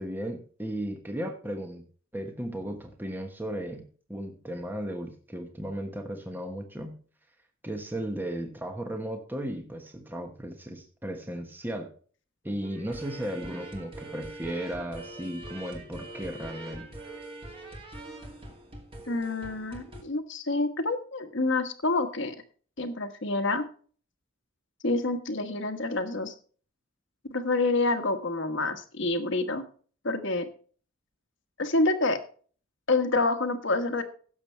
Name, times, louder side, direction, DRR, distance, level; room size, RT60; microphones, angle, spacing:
voice 1, 0.0-1.8 2.1-7.0 7.6-11.9 12.4-16.9, right 1 dB, 10° right, 4 dB, 1.2 m, -35 dB
sound 1, 12.6-20.0, right 2 dB, 25° right, 2.5 m, -43 dB
voice 2, 19.1-22.3 22.8-23.6 24.8-26.3 27.3-29.6 30.0-30.5 31.6-32.2 32.9-34.0, left 2 dB, 60° left, 8 dB, 1.3 m, -27 dB
16.5 x 7.0 x 3.3 m, 0.43 s
head